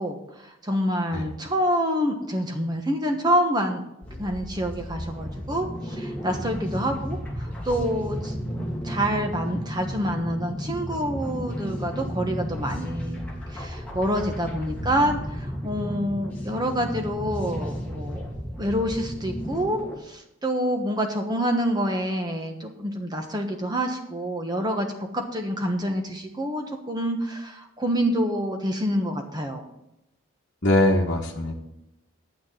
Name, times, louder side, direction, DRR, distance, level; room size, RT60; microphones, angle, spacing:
voice 1, 0.0-3.8 4.2-8.3 8.8-13.2 13.5-19.8 20.1-29.7, equal, 20° right, 4 dB, 1.2 m, -27 dB
sound 1, 4.0-20.0, equal, 5° left, 1.9 m, -33 dB
voice 2, 14.8-15.1 30.6-31.6, left 1 dB, 50° left, -2 dB, 1.3 m, -23 dB
9.2 x 6.3 x 7.6 m, 0.87 s
head